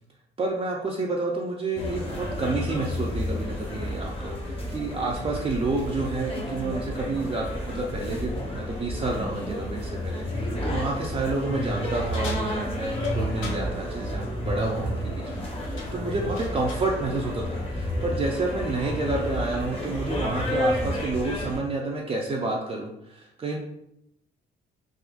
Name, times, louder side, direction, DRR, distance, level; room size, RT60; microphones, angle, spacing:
voice 1, 0.4-23.6, right 3 dB, 30° right, -2 dB, 0.5 m, -30 dB
sound 1, 1.8-21.6, equal, 30° left, 0.9 m, -31 dB
sound 2, 12.1-13.7 15.1-15.4 15.8-16.9, left 4 dB, 75° left, 0.6 m, -41 dB
3.7 x 2.4 x 2.4 m, 0.79 s
cardioid pair, 90°, 20 cm